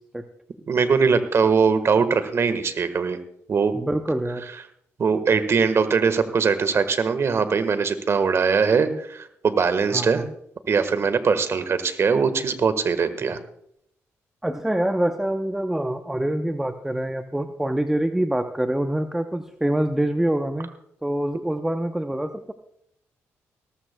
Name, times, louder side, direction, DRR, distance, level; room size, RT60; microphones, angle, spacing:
voice 1, 0.7-3.2 3.5-3.7 5.0-10.2 10.7-13.4, right 5 dB, 50° right, 11 dB, 1.4 m, -21 dB
voice 2, 3.7-4.5 9.9-10.3 14.4-20.7 21.0-22.5, right 1 dB, 5° right, 8 dB, 0.7 m, -25 dB
18.5 x 13.5 x 2.2 m, 0.73 s
supercardioid pair, 60°, 6 cm